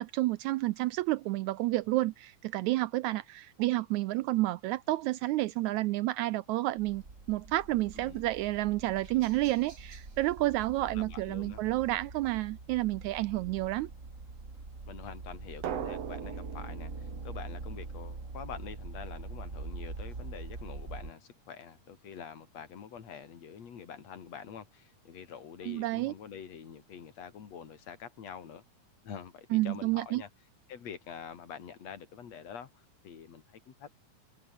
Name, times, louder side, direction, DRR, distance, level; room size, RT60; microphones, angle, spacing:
voice 1, 0.0-7.0 7.3-13.9 25.7-26.1 29.5-30.2, right 17 dB, 80° right, 1.8 m, -30 dB
sound 1, 6.8-21.1, right 3 dB, 25° right, 3.3 m, -44 dB
voice 2, 8.0-8.3 10.9-11.6 14.9-28.6 29.0-30.3 30.7-32.7 33.0-33.9, left 7 dB, 55° left, 3.5 m, -46 dB
Drum, 15.6-18.3, right 10 dB, 55° right, 2.4 m, -40 dB
omnidirectional pair, 3.7 m